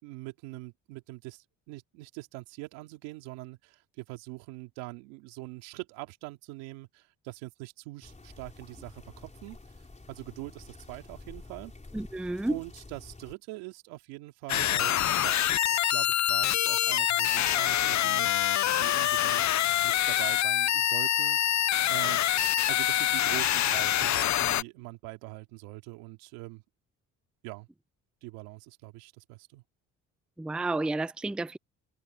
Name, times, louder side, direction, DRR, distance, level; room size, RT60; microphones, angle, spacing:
voice 1, 0.0-9.6 10.1-11.7 12.5-18.5 18.8-19.6 19.8-21.4 21.9-22.2 22.7-26.6 27.4-27.7 28.2-29.6, right 22 dB, 90° right, 2.7 m, -43 dB
sound 1, 8.0-13.3, left 2 dB, 20° left, 4.2 m, -49 dB
voice 2, 11.9-12.6 30.4-31.6, right 2 dB, 5° right, 0.4 m, -31 dB
sound 2, 14.5-24.6, left 12 dB, 50° left, 0.7 m, -25 dB
supercardioid pair, 60°, 35 cm